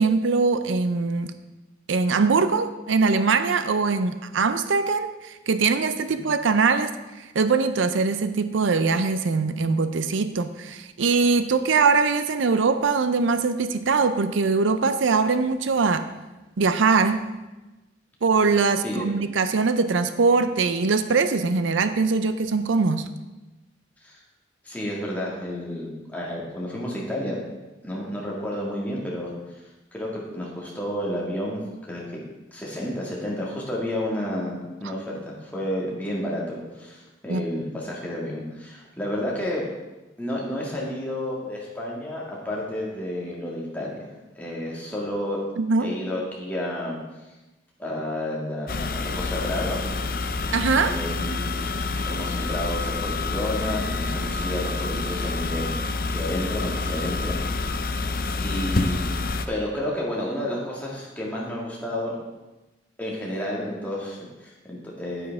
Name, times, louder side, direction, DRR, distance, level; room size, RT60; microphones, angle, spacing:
voice 1, 0.0-1.3 1.9-6.9 7.3-16.1 16.6-17.3 18.2-23.1 37.3-37.5 45.6-45.9 50.5-51.0, right 4 dB, 85° right, 11 dB, 0.5 m, -22 dB
voice 2, 24.6-27.4 27.8-29.6 29.9-31.6 31.9-32.0 32.5-39.7 40.2-44.1 44.4-45.4 45.8-47.0 47.8-49.8 50.9-51.7 52.0-55.7 56.1-57.8 58.4-59.2 59.5-62.2 63.0-65.3, left 1 dB, 10° left, -4 dB, 2.0 m, -31 dB
sound 1, 48.7-59.5, left 3 dB, 50° left, 0.5 m, -28 dB
9.8 x 9.3 x 3.5 m, 1.1 s
head